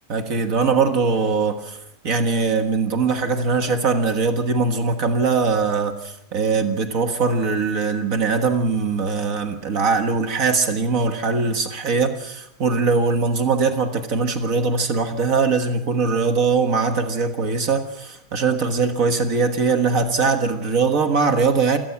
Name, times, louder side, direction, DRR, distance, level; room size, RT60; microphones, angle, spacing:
voice 1, 0.1-1.8 2.0-21.8, right 4 dB, 75° right, 7 dB, 2.0 m, -21 dB
28.5 x 17.5 x 5.9 m, 0.78 s
omnidirectional pair, 1.4 m